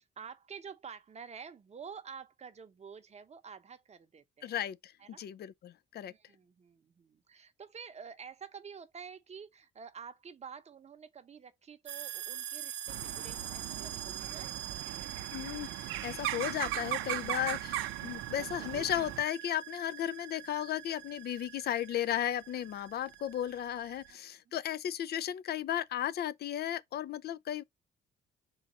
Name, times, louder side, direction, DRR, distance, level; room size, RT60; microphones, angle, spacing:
voice 1, 0.0-4.6 5.0-5.3 6.0-14.6 14.8-15.3 18.0-18.3 24.1-24.2 24.4-24.5, right 6 dB, 35° right, 0.7 m, -49 dB
voice 2, 4.4-4.9 5.2-6.1 15.3-27.6, left 11 dB, 55° left, 0.4 m, -35 dB
sound 1, 11.9-24.1, right 10 dB, 70° right, 0.9 m, -44 dB
sound 2, 12.9-19.2, right 14 dB, 85° right, 0.5 m, -38 dB
3.8 x 2.3 x 4.0 m
cardioid pair, 90°, 20 cm